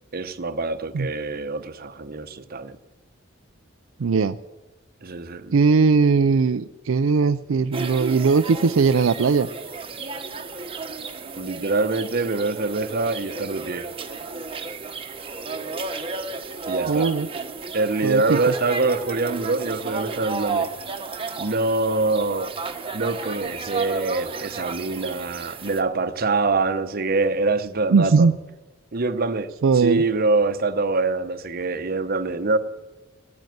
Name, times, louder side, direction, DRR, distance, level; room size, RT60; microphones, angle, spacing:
voice 1, 0.1-2.8 5.0-5.6 11.4-13.9 16.7-17.1 17.7-20.7 21.4-22.5 22.9-28.3 28.9-32.6, right 3 dB, 50° right, 10 dB, 0.9 m, -24 dB
voice 2, 4.0-4.4 5.5-9.5 16.9-17.3 18.0-18.5 27.9-28.4 29.6-30.0, right 5 dB, 80° right, 9 dB, 0.5 m, -19 dB
sound 1, 7.7-25.8, right 4 dB, 30° right, 1.1 m, -33 dB
16.5 x 9.4 x 9.3 m, 1.1 s
head